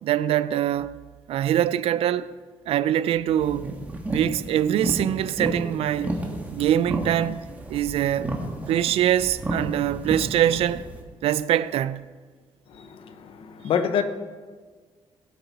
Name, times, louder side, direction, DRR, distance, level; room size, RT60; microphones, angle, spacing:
voice 1, 0.0-0.9 1.3-2.4 2.7-3.7 4.1-6.2 6.5-7.4 7.7-8.3 8.7-10.9 11.2-12.1, right 11 dB, 70° right, 0.4 m, -23 dB
sound 1, 3.4-11.0, right 1 dB, 15° right, 1.5 m, -32 dB
voice 2, 12.8-14.0, left 7 dB, 60° left, 0.9 m, -27 dB
17.5 x 8.0 x 4.2 m
cardioid pair, 155°, 10 cm